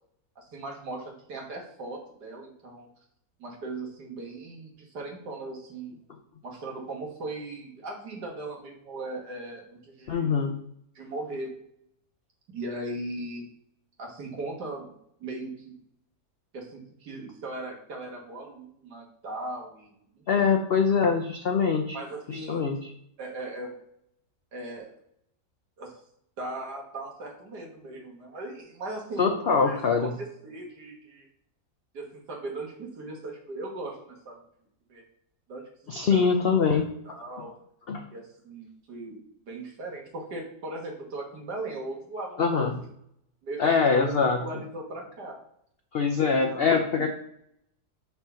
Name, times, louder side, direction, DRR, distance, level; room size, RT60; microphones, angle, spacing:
voice 1, 0.4-2.9 3.4-6.0 6.4-10.4 11.0-11.5 12.5-13.4 14.0-14.9 15.2-15.7 16.5-19.9 20.4-20.5 21.9-22.6 23.2-23.8 24.5-24.9 25.8-25.9 26.4-31.3 31.9-34.4 34.9-35.0 35.5-36.2 36.5-36.8 37.0-37.6 38.1-39.2 39.5-42.9 43.4-45.4 46.3-47.1, right 2 dB, 85° right, 0 dB, 2.2 m, -38 dB
voice 2, 10.1-10.5 20.3-22.0 22.3-22.8 29.2-30.1 35.9-36.8 37.9-38.0 42.4-42.7 43.6-44.4 45.9-47.1, left 5 dB, 55° left, 3 dB, 0.7 m, -23 dB
5.7 x 4.4 x 5.6 m, 0.72 s
omnidirectional pair, 1.7 m